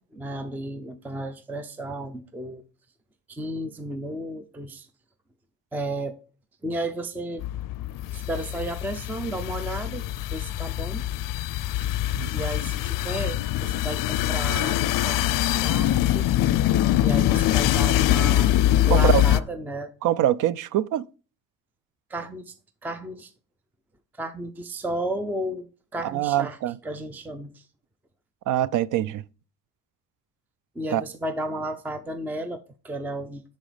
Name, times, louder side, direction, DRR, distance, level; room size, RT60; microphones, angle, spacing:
voice 1, 0.0-2.6 3.3-4.9 5.7-6.2 6.6-7.4 8.1-10.0 10.3-11.1 12.3-16.3 17.0-18.5 18.9-19.9 22.1-22.5 22.8-23.3 24.2-25.7 25.9-26.6 26.8-27.7 30.8-33.4, right 1 dB, 5° right, 0.5 m, -33 dB
sound 1, 7.4-19.4, left 13 dB, 65° left, 0.5 m, -23 dB
voice 2, 18.9-19.2 20.0-21.0 26.0-26.8 28.5-29.2 30.9-31.0, right 12 dB, 60° right, 0.5 m, -24 dB
10.0 x 4.1 x 5.0 m
cardioid pair, 155°, 35 cm